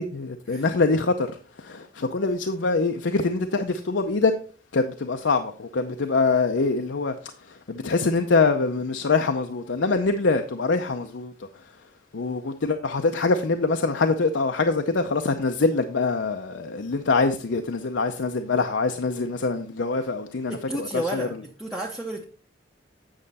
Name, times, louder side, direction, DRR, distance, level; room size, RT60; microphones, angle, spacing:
voice 1, 0.0-1.3 1.6-4.3 4.7-11.5 12.1-21.3, left 3 dB, 70° left, 0.6 m, -24 dB
voice 2, 20.5-22.2, right 1 dB, 5° right, 0.7 m, -32 dB
8.9 x 6.4 x 4.1 m
head